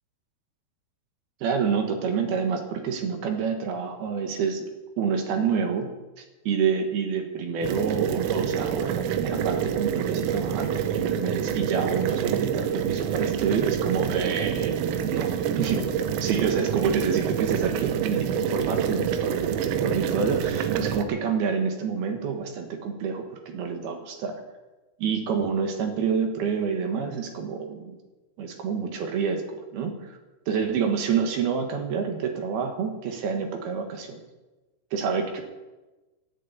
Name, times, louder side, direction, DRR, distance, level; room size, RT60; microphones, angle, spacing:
voice 1, 1.4-4.7 5.0-5.9 6.5-15.3 15.6-15.9 16.2-24.4 25.0-28.0 28.4-30.2 30.5-34.2 34.9-35.4, right 6 dB, 65° right, 4 dB, 2.7 m, -28 dB
sound 1, 7.6-21.0, right 8 dB, 90° right, 3.4 m, -27 dB
14.0 x 8.3 x 8.3 m, 1.1 s
omnidirectional pair, 5.7 m